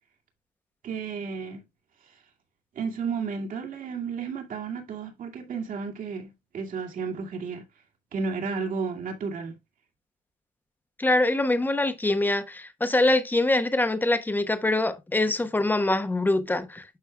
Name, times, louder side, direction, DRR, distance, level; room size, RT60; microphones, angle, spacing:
voice 1, 0.8-1.6 2.8-7.6 8.1-9.6, right 5 dB, 55° right, 2.3 m, -32 dB
voice 2, 11.0-16.8, left 2 dB, 10° left, 1.0 m, -24 dB
11.5 x 4.6 x 2.3 m
cardioid pair, 110°, 17 cm